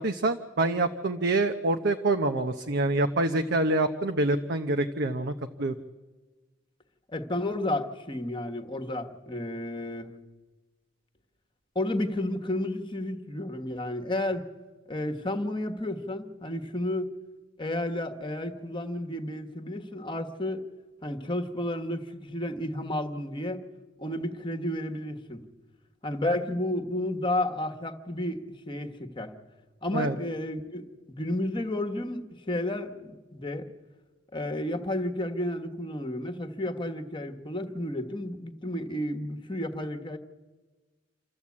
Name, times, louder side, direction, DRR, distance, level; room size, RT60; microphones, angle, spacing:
voice 1, 0.0-5.3 5.6-5.7 29.9-30.2, right 2 dB, 60° right, 7 dB, 0.8 m, -26 dB
voice 2, 7.1-10.1 11.7-14.5 14.9-17.2 17.6-20.7 21.0-23.6 24.0-25.4 26.0-29.3 29.8-33.7 34.3-40.2, left 1 dB, 25° left, 6 dB, 1.4 m, -32 dB
27.5 x 13.5 x 8.5 m, 1.3 s
head